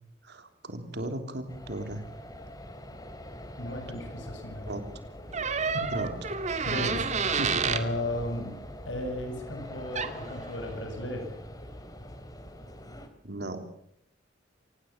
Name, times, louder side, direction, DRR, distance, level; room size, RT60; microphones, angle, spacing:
voice 1, 0.2-2.0 4.7-4.8 5.9-6.1 6.8-6.9 7.3-7.6 13.2-13.6, right 1 dB, 60° right, 7 dB, 3.5 m, -36 dB
sound 1, 1.5-13.1, left 1 dB, 20° left, 3.1 m, -43 dB
voice 2, 3.6-4.8 5.7-6.0 6.6-7.1 7.6-8.5 8.9-11.4, left 1 dB, 80° left, 5 dB, 7.3 m, -35 dB
sound 2, 5.3-7.9 9.9-10.2, right 5 dB, 40° right, 2.1 m, -29 dB
25.5 x 19.0 x 7.4 m, 0.72 s
head